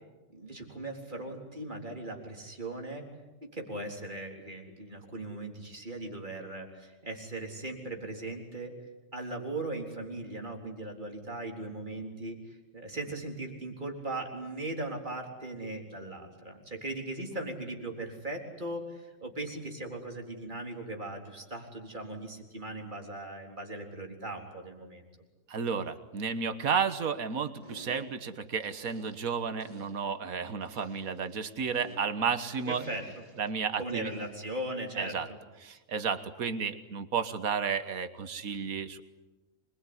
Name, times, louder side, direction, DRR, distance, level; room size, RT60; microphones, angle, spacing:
voice 1, 0.3-3.1 3.4-8.7 9.1-25.0 32.7-33.1 33.8-35.2, right 2 dB, 35° right, 2 dB, 4.1 m, -39 dB
voice 2, 25.5-32.8 33.4-34.1 35.0-35.3 35.6-39.0, right 6 dB, 90° right, 10 dB, 1.8 m, -32 dB
sound 1, 27.6-28.3 28.6-29.3 29.6-30.0 30.6-32.3 32.6-33.5 34.1-34.5, equal, 35° left, 5.0 m, -53 dB
26.0 x 22.0 x 9.8 m, 1.1 s
omnidirectional pair, 1.4 m